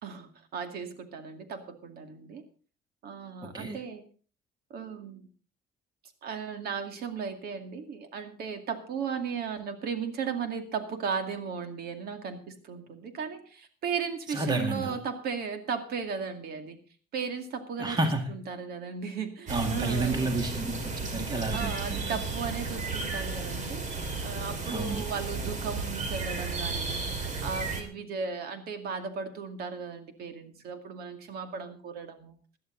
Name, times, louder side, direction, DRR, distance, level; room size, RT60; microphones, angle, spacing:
voice 1, 0.0-2.4 3.0-4.0 4.7-5.3 6.2-16.8 17.1-20.3 21.5-23.9 24.2-32.3, right 6 dB, 65° right, 7 dB, 2.3 m, -36 dB
voice 2, 14.3-14.9 17.8-18.2 19.5-22.2 24.7-25.0, right 2 dB, 25° right, 5 dB, 2.1 m, -30 dB
sound 1, 19.5-27.8, right 4 dB, 45° right, 2.6 m, -33 dB
17.0 x 11.5 x 3.8 m, 0.38 s
cardioid pair, 110°, 17 cm